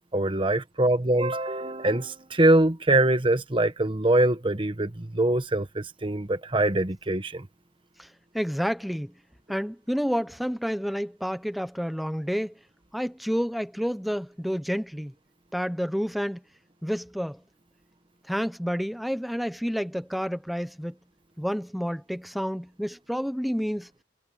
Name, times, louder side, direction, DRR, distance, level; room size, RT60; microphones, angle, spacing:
voice 1, 0.1-7.5, right 1 dB, 30° right, 1.1 m, -23 dB
voice 2, 8.3-9.1 9.5-12.5 12.9-15.1 15.5-16.4 16.8-17.4 18.3-21.0 21.4-23.9, equal, ahead, 0.8 m, -29 dB
head